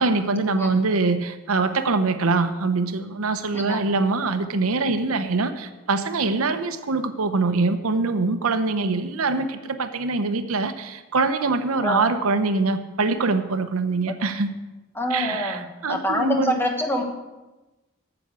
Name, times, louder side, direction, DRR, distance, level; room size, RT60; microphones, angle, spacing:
voice 1, 0.0-14.5 15.1-16.6, right 3 dB, 85° right, 9 dB, 0.8 m, -24 dB
voice 2, 3.5-3.8 11.8-12.1 14.1-14.2 14.9-17.0, left 1 dB, 10° left, 3 dB, 1.1 m, -26 dB
9.7 x 7.0 x 7.5 m, 1.1 s
head